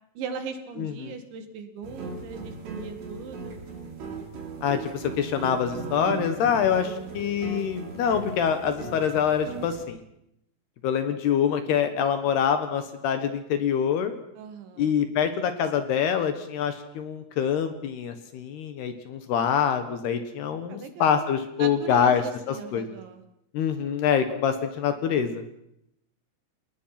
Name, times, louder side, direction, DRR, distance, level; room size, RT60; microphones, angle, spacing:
voice 1, 0.2-3.6 6.8-7.2 14.4-14.9 20.7-23.2, right 5 dB, 70° right, 8 dB, 4.2 m, -39 dB
voice 2, 0.8-1.2 4.6-10.0 10.8-14.1 14.8-23.0 23.5-25.4, left 8 dB, 65° left, 9 dB, 3.1 m, -25 dB
sound 1, 1.8-9.8, right 4 dB, 90° right, 7.1 m, -38 dB
29.5 x 19.5 x 5.9 m, 0.78 s
omnidirectional pair, 5.7 m